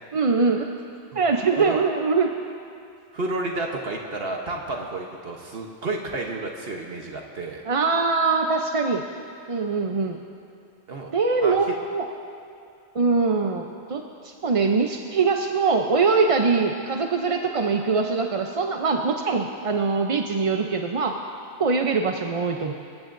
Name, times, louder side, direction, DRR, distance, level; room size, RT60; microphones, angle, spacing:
voice 1, 0.1-0.7 1.1-2.3 7.6-9.0 9.5-10.2 11.1-12.1 12.9-21.2 21.6-22.7, right 4 dB, 40° right, 3 dB, 0.5 m, -23 dB
voice 2, 3.1-7.6 10.9-11.1 11.4-11.7, right 2 dB, 60° right, 1 dB, 1.2 m, -31 dB
25.5 x 15.5 x 2.6 m, 2.4 s
omnidirectional pair, 1.2 m